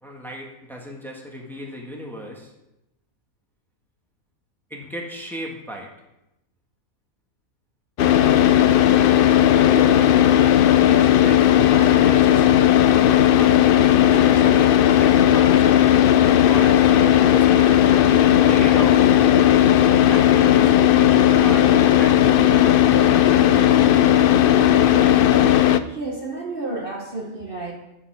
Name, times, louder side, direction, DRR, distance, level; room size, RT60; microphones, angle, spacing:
voice 1, 0.0-2.5 4.7-5.9 9.7-10.1 10.8-12.6 13.0-13.7 13.9-15.9 16.5-19.0 20.1-22.3, equal, ahead, -1 dB, 1.5 m, -35 dB
Car / Idling, 8.0-25.8, left 11 dB, 90° left, 0.4 m, -15 dB
voice 2, 25.9-27.8, right 2 dB, 40° right, 0 dB, 1.3 m, -31 dB
10.0 x 7.3 x 5.7 m, 0.91 s
omnidirectional pair, 1.5 m